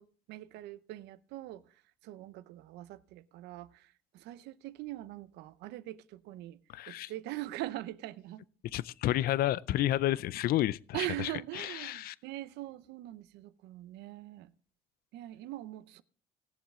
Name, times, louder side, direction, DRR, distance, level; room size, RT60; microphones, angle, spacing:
voice 1, 0.0-1.6 2.0-6.6 6.9-8.4 10.9-14.5 15.1-16.0, right 16 dB, 85° right, 0.8 m, -42 dB
voice 2, 6.7-7.1 8.7-12.1, left 14 dB, 65° left, 0.4 m, -31 dB
18.5 x 7.1 x 3.7 m
cardioid pair, 110°, 17 cm